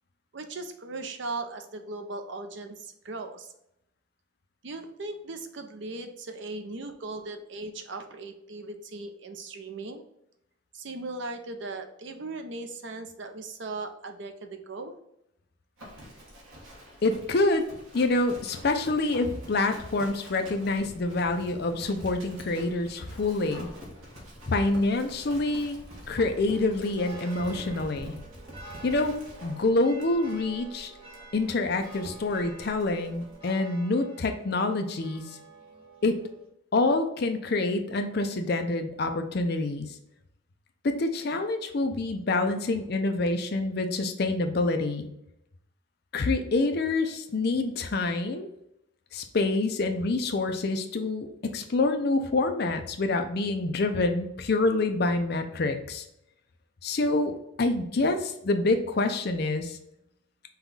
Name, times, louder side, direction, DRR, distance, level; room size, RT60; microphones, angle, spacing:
voice 1, 0.3-3.5 4.6-10.0 10.7-14.9, right 3 dB, 60° right, 6 dB, 0.6 m, -38 dB
Livestock farm animals working animals, 15.8-33.4, equal, 90° right, 1.4 m, -48 dB
voice 2, 17.0-17.6 17.9-23.7 24.5-25.8 26.1-28.2 28.8-29.1 29.4-30.9 31.3-35.4 36.0-36.2 36.7-39.9 40.8-45.1 46.1-48.5 49.1-56.0 56.8-57.3 57.6-59.8, left 2 dB, 50° left, 6 dB, 0.5 m, -27 dB
sound 1, 18.5-20.2 20.5-23.2 23.5-29.3, left 1 dB, 30° left, 0.9 m, -49 dB
sound 2, 26.5-36.5, right 3 dB, 25° right, 1.1 m, -49 dB
5.5 x 2.3 x 3.9 m, 0.80 s
head